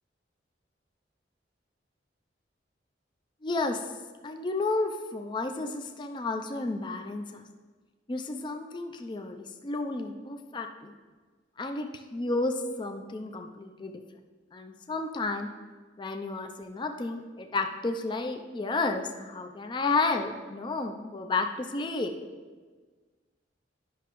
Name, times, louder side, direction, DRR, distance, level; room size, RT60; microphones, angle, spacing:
voice 1, 3.4-3.8 4.2-7.4 8.1-10.9 11.6-14.0 14.5-15.5 16.0-22.1, left 3 dB, 25° left, 5 dB, 0.4 m, -32 dB
10.0 x 5.8 x 3.0 m, 1.4 s
head